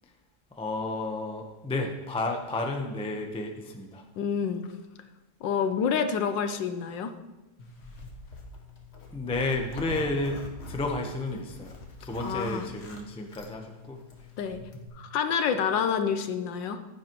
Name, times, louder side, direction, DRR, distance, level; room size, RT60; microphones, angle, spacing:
voice 1, 0.5-4.0 9.1-14.0, left 2 dB, 10° left, 2 dB, 0.3 m, -32 dB
voice 2, 4.2-4.7 5.4-7.1 12.2-12.7 14.4-14.6 15.0-16.8, left 7 dB, 70° left, 9 dB, 1.4 m, -28 dB
Zipper (clothing), 7.6-14.9, left 2 dB, 40° left, 1.3 m, -44 dB
15.0 x 9.9 x 3.1 m, 1.1 s
omnidirectional pair, 2.1 m